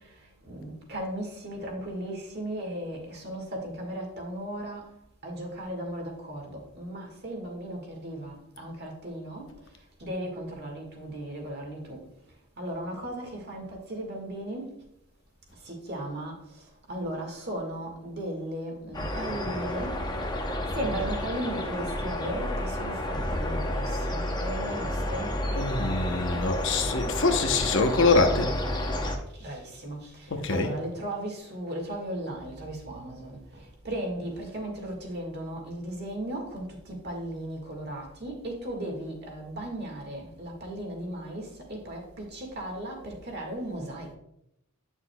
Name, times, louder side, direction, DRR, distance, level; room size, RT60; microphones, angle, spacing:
voice 1, 0.5-4.8 5.2-9.4 10.0-12.0 12.6-14.7 15.6-16.4 16.9-19.9 20.7-25.3 29.4-44.1, right 1 dB, 45° right, 1.7 m, -36 dB
sound 1, 18.9-29.2, left 1 dB, 20° left, 0.7 m, -30 dB
voice 2, 25.5-28.5 30.3-30.7, left 3 dB, 55° left, 0.8 m, -24 dB
9.4 x 6.2 x 2.2 m
head